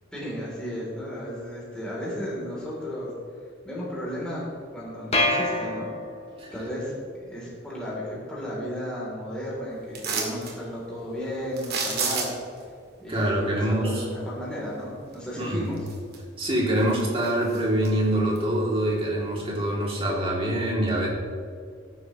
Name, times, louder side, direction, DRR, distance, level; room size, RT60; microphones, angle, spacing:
voice 1, 0.1-3.1 3.6-5.9 6.5-12.3 13.0-15.8, equal, 5° left, -7 dB, 3.4 m, -34 dB
sound 1, 5.1-6.5, left 1 dB, 35° left, 2.0 m, -26 dB
sound 2, 9.9-10.6 11.6-12.6 15.1-15.2 15.7-16.4 16.8-17.9 18.4-18.5, right 5 dB, 55° right, 2.1 m, -30 dB
voice 2, 13.1-14.0 15.4-15.7 16.4-21.1, right 1 dB, 30° right, -3 dB, 2.8 m, -25 dB
17.5 x 9.9 x 3.2 m, 2.3 s
head